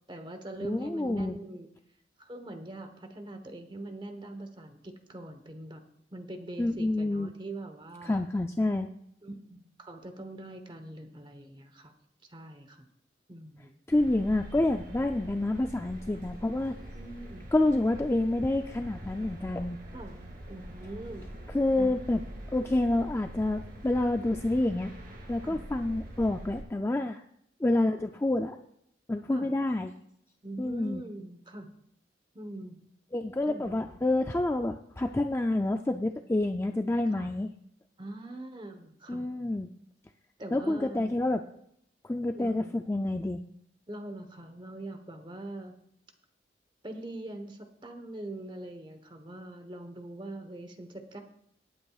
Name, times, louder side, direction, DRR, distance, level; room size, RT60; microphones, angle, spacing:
voice 1, 0.1-1.7 2.2-5.8 6.1-8.2 9.2-11.9 12.3-12.9 13.3-13.7 16.1-16.3 16.9-17.5 19.9-20.2 20.5-21.3 21.8-22.0 25.4-25.6 29.3-29.5 30.4-31.7 32.3-32.9 33.4-34.0 37.1-37.3 38.0-39.2 40.4-41.1 42.3-42.8 43.9-45.7 46.8-51.2, right 1 dB, 25° right, 7 dB, 1.1 m, -43 dB
voice 2, 0.6-1.3 6.6-7.3 8.0-8.9 13.9-16.7 17.5-19.8 21.5-22.2 22.5-24.9 25.3-27.2 27.6-28.6 29.1-29.9 30.6-31.0 33.1-37.5 39.1-39.7 40.5-41.4 42.0-43.4, left 2 dB, 15° left, 5 dB, 0.4 m, -28 dB
sound 1, 13.9-26.6, right 1 dB, 55° right, 2.5 m, -44 dB
18.0 x 8.8 x 2.4 m, 0.72 s
head